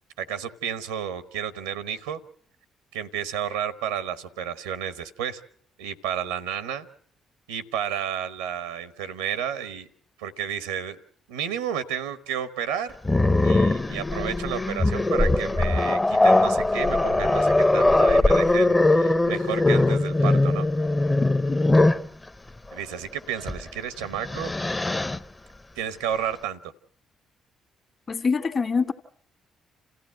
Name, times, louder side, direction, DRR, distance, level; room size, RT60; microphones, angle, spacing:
voice 1, 0.2-2.2 2.9-5.4 5.8-6.9 7.5-9.9 10.2-11.0 11.3-12.9 13.4-20.7 22.7-24.5 25.8-26.6, right 9 dB, 85° right, 14 dB, 1.0 m, -31 dB
Growling, 13.0-22.1 23.4-23.6 24.0-25.2, left 2 dB, 20° left, 0.8 m, -21 dB
voice 2, 28.1-28.9, left 5 dB, 40° left, 7 dB, 1.7 m, -24 dB
27.5 x 15.0 x 7.6 m, 0.63 s
hypercardioid pair, 45°, 0 cm